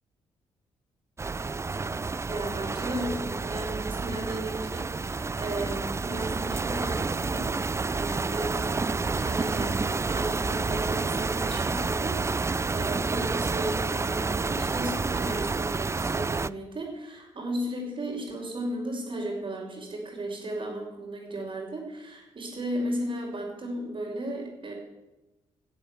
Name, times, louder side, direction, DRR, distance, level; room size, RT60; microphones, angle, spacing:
sound 1, 1.2-16.5, right 4 dB, 20° right, 0.4 m, -29 dB
voice 1, 2.3-7.6 7.9-24.7, right 1 dB, 45° right, -6 dB, 4.6 m, -35 dB
14.5 x 7.9 x 8.0 m, 1.0 s
supercardioid pair, 55°, 12 cm